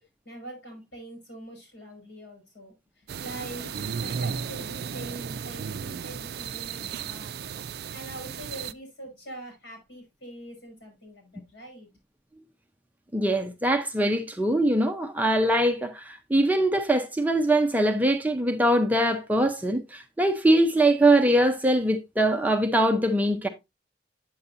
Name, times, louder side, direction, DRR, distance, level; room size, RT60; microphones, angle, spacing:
voice 1, 0.2-7.3 7.9-11.9, right 1 dB, 65° left, 5.5 m, -43 dB
sound 1, 3.1-8.7, right 6 dB, 60° right, 0.4 m, -34 dB
voice 2, 13.1-23.5, right 1 dB, 10° right, 0.6 m, -22 dB
8.8 x 7.0 x 2.6 m
head